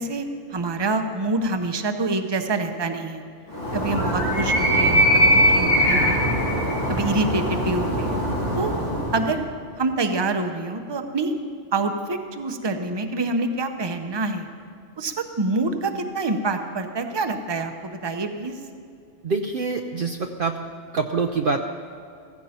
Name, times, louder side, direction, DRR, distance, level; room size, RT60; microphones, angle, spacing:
voice 1, 0.0-3.2 3.7-6.2 6.9-8.2 8.5-8.7 9.1-9.4 9.8-11.3 11.7-14.5 15.0-18.6, right 3 dB, 25° right, 6 dB, 0.8 m, -26 dB
Animal, 3.5-9.4, equal, 85° left, 3.7 m, -21 dB
voice 2, 19.2-20.6 20.9-21.6, right 4 dB, 55° right, 4 dB, 0.7 m, -25 dB
15.5 x 15.5 x 4.3 m, 2.5 s
omnidirectional pair, 1.2 m